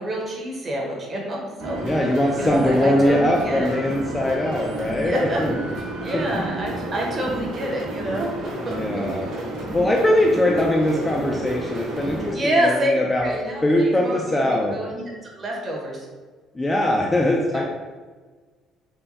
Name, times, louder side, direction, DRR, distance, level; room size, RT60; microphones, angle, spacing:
voice 1, 0.0-1.8 2.4-3.7 5.0-5.4 6.0-9.3 12.0-16.0 17.5-17.6, right 1 dB, 25° right, -1 dB, 1.0 m, -27 dB
sound 1, 1.6-12.3, right 1 dB, 80° right, 1.3 m, -31 dB
voice 2, 1.8-5.6 6.1-6.5 8.7-9.3 9.7-13.3 13.6-14.7 16.6-17.6, left 1 dB, 10° left, -1 dB, 0.4 m, -21 dB
5.5 x 2.2 x 4.0 m, 1.4 s
cardioid pair, 165°, 0 cm